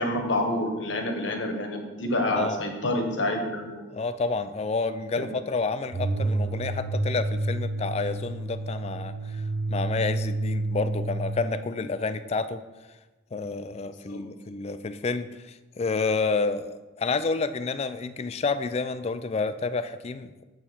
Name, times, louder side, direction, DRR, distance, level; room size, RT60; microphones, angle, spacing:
voice 1, 0.0-3.8 14.0-14.2, left 1 dB, 75° left, 4 dB, 1.3 m, -28 dB
voice 2, 3.9-12.6 13.3-20.4, left 4 dB, 35° left, 12 dB, 0.4 m, -29 dB
sound 1, 5.9-11.5, right 2 dB, 65° right, 0.7 m, -29 dB
7.4 x 7.0 x 4.3 m, 1.2 s
head